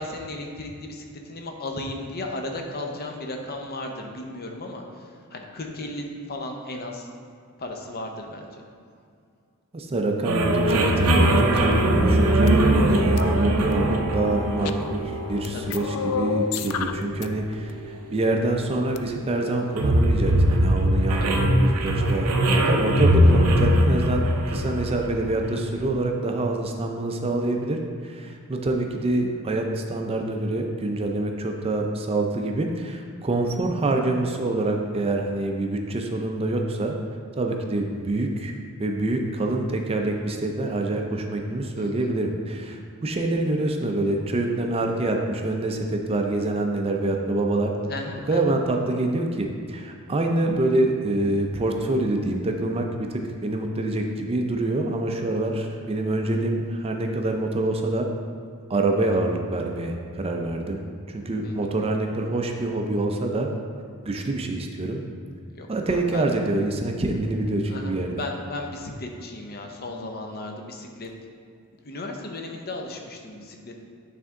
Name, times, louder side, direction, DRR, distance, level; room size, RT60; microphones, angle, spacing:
voice 1, 0.0-7.1 7.6-8.5 15.5-15.6 21.2-21.4 22.5-22.7 41.7-42.1 47.9-48.6 61.4-61.5 65.6-66.2 67.7-71.1 71.8-73.8, left 2 dB, 45° left, 2 dB, 0.7 m, -35 dB
voice 2, 9.7-36.9 37.4-38.5 38.8-47.7 48.3-58.1 58.7-60.8 61.1-63.5 64.0-65.0 65.7-68.2, right 2 dB, 25° right, 2 dB, 0.4 m, -26 dB
sound 1, 10.2-25.7, right 1 dB, 85° right, 0.6 m, -22 dB
sound 2, 10.7-10.8 11.3-12.5 13.2-13.8 14.5-15.1 15.4-17.3 17.5-17.7 18.8-19.0, left 6 dB, 90° left, 0.3 m, -31 dB
8.9 x 3.4 x 3.7 m, 2.3 s
head